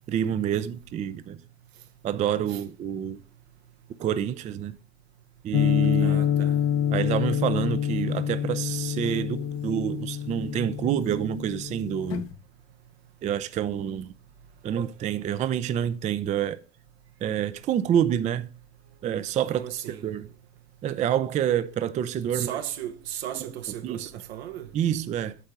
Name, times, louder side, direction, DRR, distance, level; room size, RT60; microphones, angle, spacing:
voice 1, 0.1-1.4 2.0-3.2 4.0-4.8 5.4-6.3 6.9-12.3 13.2-14.1 14.6-16.6 17.2-18.5 19.0-20.3 20.8-22.6 23.3-23.4 23.8-24.1 24.7-25.4, right 10 dB, 25° right, 0.4 m, -28 dB
sound 1, 5.5-12.3, left 9 dB, 40° left, 0.6 m, -27 dB
voice 2, 6.0-6.5 19.5-20.0 22.3-24.7, right 11 dB, 70° right, 1.0 m, -35 dB
8.2 x 4.4 x 5.1 m
hypercardioid pair, 90°, 33 cm